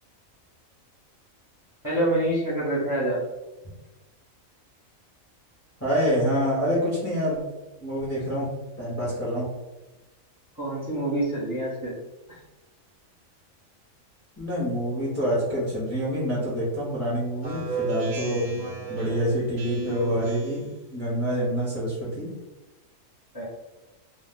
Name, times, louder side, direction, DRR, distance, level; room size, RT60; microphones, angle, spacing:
voice 1, 1.8-3.2 10.6-11.9 23.3-23.4, right 1 dB, 15° right, -6 dB, 1.0 m, -26 dB
voice 2, 5.8-7.4 7.8-8.5 8.8-9.5 14.4-18.5 18.9-22.3, equal, 15° left, -7 dB, 0.7 m, -26 dB
Speech synthesizer, 17.4-20.8, right 3 dB, 70° right, 0.4 m, -33 dB
2.4 x 2.3 x 3.6 m, 1.1 s
omnidirectional pair, 1.4 m